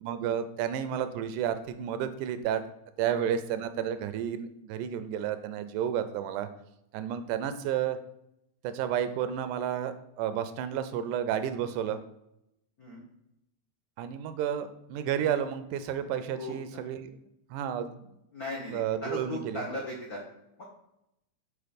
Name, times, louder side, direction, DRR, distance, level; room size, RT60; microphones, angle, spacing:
voice 1, 0.0-2.6 3.0-6.5 6.9-8.0 8.6-12.0 14.0-17.2 17.5-18.1 18.7-19.6, right 9 dB, 85° right, 11 dB, 2.1 m, -31 dB
voice 2, 18.3-20.2 20.6-20.7, left 1 dB, 65° left, -3 dB, 0.8 m, -37 dB
5.7 x 4.3 x 5.1 m, 0.84 s
omnidirectional pair, 3.5 m